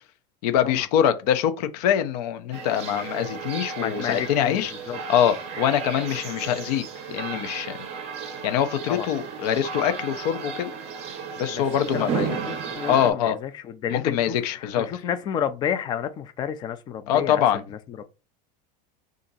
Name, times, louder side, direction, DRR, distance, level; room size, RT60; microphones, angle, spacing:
voice 1, 0.4-4.7 5.1-7.8 8.4-10.7 11.4-12.3 12.9-13.4 13.9-14.9 17.1-17.6, left 9 dB, 70° left, 0.6 m, -24 dB
sound 1, 2.5-13.1, right 6 dB, 30° right, 0.6 m, -34 dB
voice 2, 3.8-4.6 4.9-5.0 8.9-9.1 11.5-18.0, left 9 dB, 20° left, 0.3 m, -31 dB
2.8 x 2.5 x 4.0 m
supercardioid pair, 160°, 21 cm